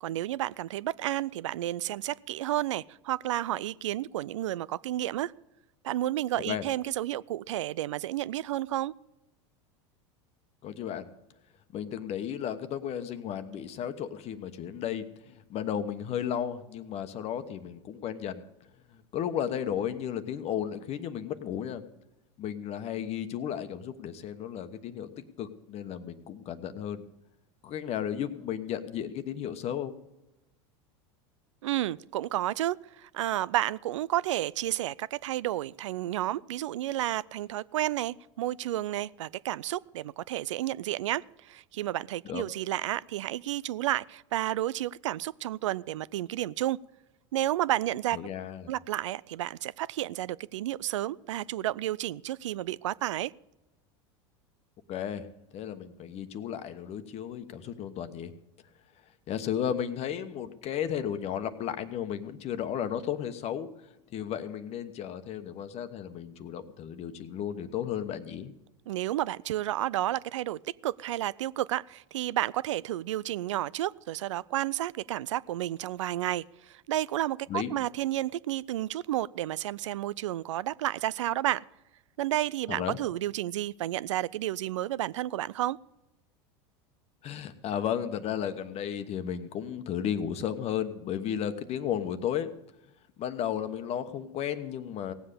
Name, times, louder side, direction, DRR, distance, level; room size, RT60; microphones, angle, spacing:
voice 1, 0.0-5.3 5.8-8.9 31.6-46.8 47.3-48.2 48.7-53.3 68.9-81.6 82.2-85.8, right 14 dB, 90° right, 0.4 m, -31 dB
voice 2, 10.6-11.1 11.7-18.4 18.9-21.8 22.4-25.1 25.4-27.0 27.6-30.0 42.2-42.4 48.1-48.7 54.9-55.3 55.5-58.3 59.3-68.5 77.5-77.7 82.7-83.0 87.2-92.5 93.2-95.1, left 9 dB, 45° left, 1.1 m, -34 dB
17.0 x 7.7 x 6.8 m
hypercardioid pair, 105°, 15 cm